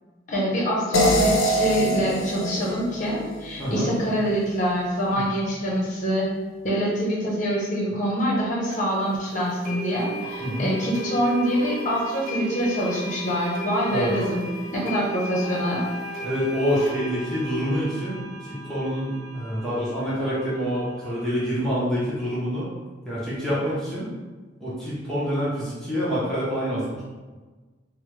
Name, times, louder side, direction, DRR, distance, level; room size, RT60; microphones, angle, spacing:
voice 1, 0.3-6.3 6.6-15.8, equal, 40° left, -4 dB, 0.8 m, -25 dB
sound 1, 0.9-4.0, equal, 85° left, 0.5 m, -24 dB
sound 2, 8.7-8.8 9.6-21.2, right 2 dB, 45° right, 0.8 m, -35 dB
voice 2, 10.4-10.7 13.9-14.1 16.2-22.7 23.1-24.1 24.6-27.0, equal, ahead, -10 dB, 0.7 m, -27 dB
3.1 x 2.0 x 3.2 m, 1.3 s
head